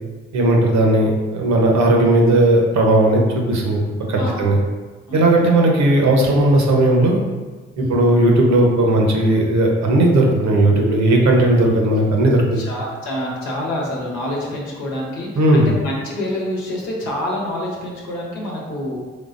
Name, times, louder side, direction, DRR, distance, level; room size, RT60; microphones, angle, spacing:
voice 1, 0.3-3.8 4.1-4.6 5.1-7.2 7.8-12.6 15.4-15.7, right 1 dB, 60° right, 0 dB, 0.8 m, -16 dB
voice 2, 4.2-4.5 5.1-5.3 7.8-8.1 11.3-11.5 12.5-19.0, left 1 dB, 80° left, -3 dB, 1.0 m, -27 dB
3.7 x 3.3 x 2.5 m, 1.3 s
hypercardioid pair, 45°, 31 cm